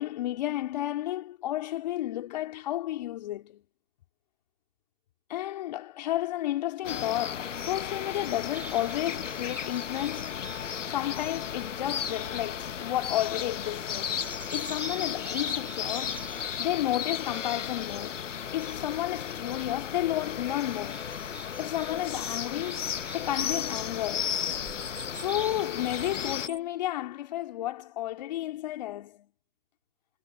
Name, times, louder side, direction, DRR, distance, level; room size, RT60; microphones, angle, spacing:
voice 1, 0.0-3.6 5.3-10.4 10.9-14.2 14.5-16.2 16.6-21.1 21.6-24.4 25.1-29.3, left 14 dB, 30° left, 3.5 m, -32 dB
sound 1, 6.8-26.5, left 8 dB, 55° left, 1.1 m, -34 dB
sound 2, 8.5-26.6, right 3 dB, 5° right, 3.1 m, -49 dB
hypercardioid pair, 165°, 45 cm